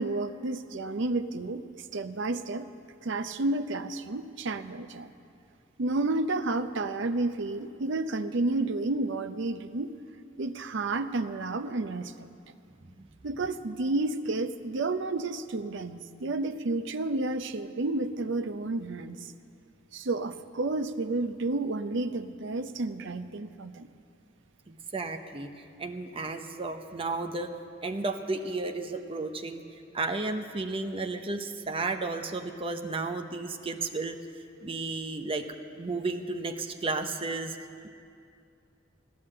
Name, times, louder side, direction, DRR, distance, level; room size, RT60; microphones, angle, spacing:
voice 1, 0.0-1.6 1.9-2.7 3.0-5.1 5.8-9.9 10.4-12.3 13.2-19.3 19.9-23.9, right 2 dB, 60° right, 10 dB, 0.6 m, -31 dB
voice 2, 24.7-25.5 25.8-27.5 27.8-29.6 29.9-34.2 34.6-35.4 35.8-37.6, right 3 dB, 30° right, 6 dB, 0.7 m, -33 dB
15.5 x 10.5 x 7.6 m, 2.4 s
head